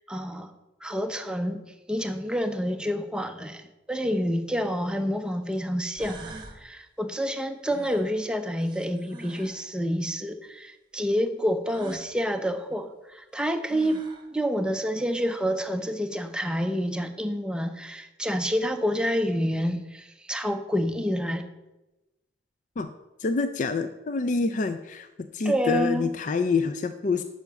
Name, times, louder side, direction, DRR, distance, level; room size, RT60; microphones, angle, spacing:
voice 1, 0.1-0.5 0.8-1.6 1.9-21.4 25.4-26.1, equal, 5° right, 6 dB, 0.6 m, -28 dB
sound 1, 4.5-4.6 5.5-5.6 6.0-6.6 7.7-9.6 11.7-12.1 13.3-13.4 13.7-14.3, right 3 dB, 25° right, 1.1 m, -45 dB
voice 2, 23.2-25.1 25.3-27.2, left 4 dB, 45° left, 10 dB, 0.4 m, -26 dB
7.0 x 5.8 x 6.9 m, 1.0 s
head